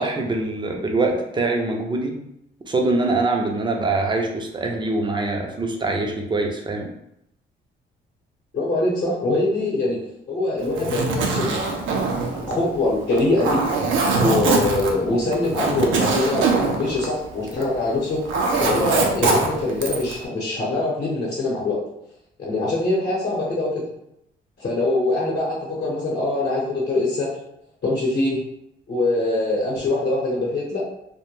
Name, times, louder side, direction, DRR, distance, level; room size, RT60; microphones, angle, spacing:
voice 1, 0.0-2.2 2.7-6.9, right 2 dB, 25° right, 1 dB, 0.5 m, -23 dB
voice 2, 8.5-10.0 10.3-11.7 12.4-13.6 14.1-18.2 18.6-21.8 22.4-23.8 24.6-27.3 27.8-28.4 28.9-30.8, left 2 dB, 55° left, -6 dB, 0.8 m, -23 dB
Zipper (clothing), 10.6-17.8 18.0-20.2, right 3 dB, 75° right, 0.5 m, -23 dB
2.1 x 2.1 x 3.1 m, 0.80 s
cardioid pair, 90°, 20 cm